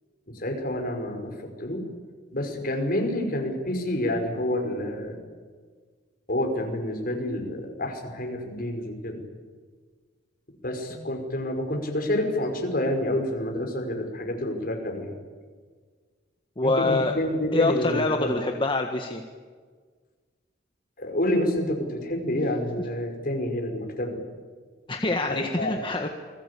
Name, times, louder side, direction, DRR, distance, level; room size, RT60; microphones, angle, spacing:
voice 1, 0.3-1.3 1.6-1.9 2.3-5.2 6.3-9.2 10.6-15.1 16.6-18.4 21.0-24.2 25.3-25.7, left 1 dB, 50° left, 3 dB, 5.5 m, -28 dB
voice 2, 16.6-17.1 17.5-19.2 24.9-26.1, left 2 dB, 30° left, 4 dB, 1.6 m, -25 dB
28.5 x 22.0 x 8.5 m, 1.6 s
head